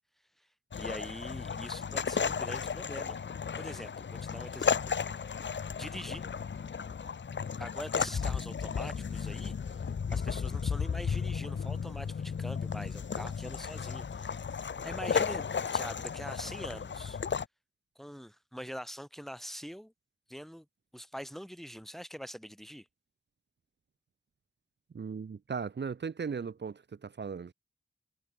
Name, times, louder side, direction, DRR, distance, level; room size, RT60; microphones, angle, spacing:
sea smooth waves novigrad, 0.7-17.5, left 6 dB, 80° left, 1.7 m, -34 dB
voice 1, 0.7-3.2 3.6-4.9 5.8-6.2 7.6-9.8 10.1-14.4 14.8-15.4 15.7-17.2 18.0-19.9 20.3-20.7 20.9-22.9, equal, ahead, 2.7 m, -44 dB
voice 2, 24.9-27.5, right 6 dB, 70° right, 1.5 m, -37 dB
wide cardioid pair, 70°, 19 cm